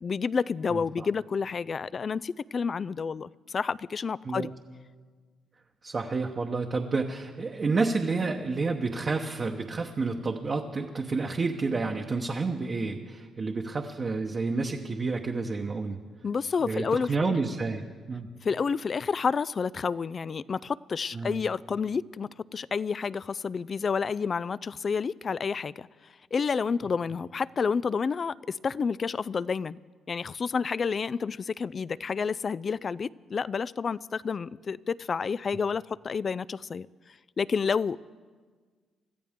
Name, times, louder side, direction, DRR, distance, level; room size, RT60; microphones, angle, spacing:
voice 1, 0.0-4.5 16.2-17.3 18.4-25.9 26.3-29.8 30.1-36.9 37.4-38.0, left 5 dB, 40° left, 19 dB, 0.3 m, -30 dB
voice 2, 0.7-1.1 4.2-4.5 5.8-16.0 16.6-17.8 18.1-18.3 21.1-21.4, right 3 dB, 35° right, 2 dB, 1.0 m, -30 dB
25.5 x 14.0 x 3.7 m, 1.5 s
cardioid pair, 90°, 0 cm